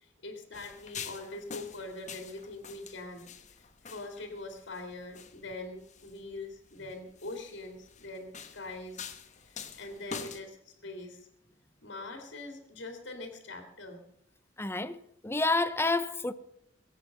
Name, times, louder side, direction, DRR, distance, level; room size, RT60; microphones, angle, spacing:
voice 1, 0.0-3.3 3.6-9.0 9.5-11.3 11.8-14.0, left 2 dB, 65° left, 2.5 m, -43 dB
sound 1, 0.5-10.4, left 6 dB, 40° left, 1.3 m, -46 dB
voice 2, 14.6-16.3, left 2 dB, 15° left, 0.6 m, -29 dB
22.0 x 8.3 x 6.7 m
head